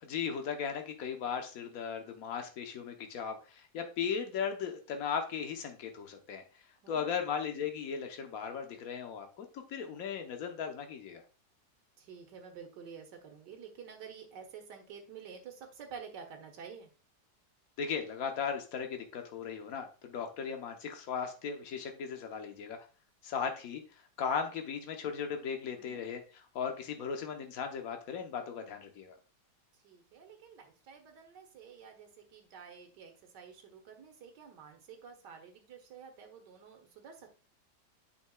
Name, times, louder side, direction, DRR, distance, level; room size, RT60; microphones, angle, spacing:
voice 1, 0.0-6.4 6.9-11.2 17.8-22.8 23.2-23.8 24.2-29.1, left 6 dB, 55° left, 5 dB, 1.3 m, -37 dB
voice 2, 6.8-7.3 12.0-16.9 25.7-26.0 29.8-37.4, right 6 dB, 65° right, 3 dB, 1.8 m, -50 dB
7.8 x 5.7 x 2.3 m, 0.35 s
omnidirectional pair, 2.0 m